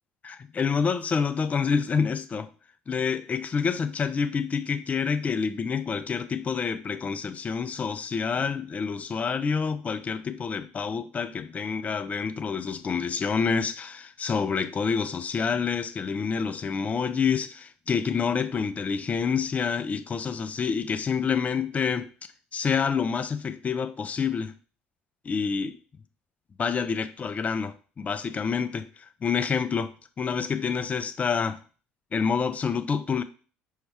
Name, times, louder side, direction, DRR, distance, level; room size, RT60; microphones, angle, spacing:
voice 1, 0.2-2.5 2.9-22.1 22.5-24.5 25.2-25.8 26.6-31.6 32.1-33.2, left 6 dB, 30° left, 0.4 m, -28 dB
5.4 x 2.3 x 3.4 m
hypercardioid pair, 75°, 5 cm